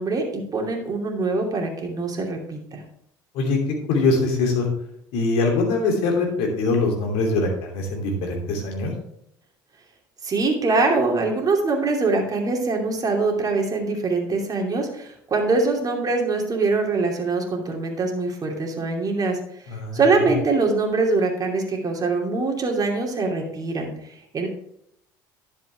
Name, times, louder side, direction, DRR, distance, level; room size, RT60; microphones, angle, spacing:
voice 1, 0.0-2.8 10.2-19.4 19.9-24.5, right 3 dB, 35° right, 2 dB, 2.7 m, -23 dB
voice 2, 3.9-4.7 5.1-8.9 19.7-20.0, left 3 dB, 65° left, 2 dB, 2.8 m, -22 dB
10.5 x 7.5 x 3.4 m, 0.73 s
hypercardioid pair, 65°, 11 cm